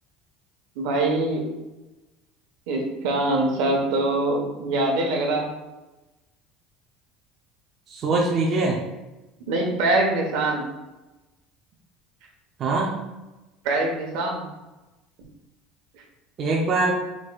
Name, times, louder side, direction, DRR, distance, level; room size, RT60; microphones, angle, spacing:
voice 1, 0.8-1.4 2.7-5.5 9.5-10.7 13.6-14.4, right 2 dB, 65° right, 1 dB, 1.0 m, -23 dB
voice 2, 7.9-8.8 12.6-12.9 16.4-16.9, right 3 dB, 30° right, -2 dB, 0.5 m, -22 dB
4.5 x 4.2 x 2.3 m, 1.1 s
cardioid pair, 175°, 0 cm